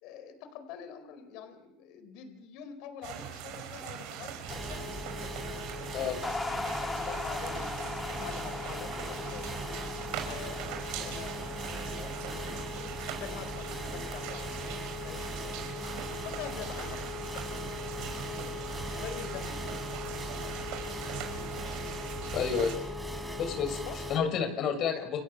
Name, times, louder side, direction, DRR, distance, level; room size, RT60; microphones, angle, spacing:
voice 1, 0.0-5.4 6.9-7.9 8.2-9.9 10.2-12.9 13.2-15.6 16.2-17.6 18.9-19.7 23.8-24.0 24.5-24.7, left 8 dB, 70° left, 9 dB, 4.7 m, -45 dB
sound 1, 3.0-22.8, right 9 dB, 70° right, 5.6 m, -42 dB
sound 2, 4.5-24.2, left 1 dB, 5° right, 6.2 m, -39 dB
sound 3, 6.2-12.7, left 3 dB, 15° left, 2.4 m, -39 dB
voice 2, 22.3-22.7 23.4-23.8 24.1-25.2, left 7 dB, 55° left, 7 dB, 7.0 m, -30 dB
30.0 x 26.5 x 7.4 m, 0.90 s
supercardioid pair, 105°, 0 cm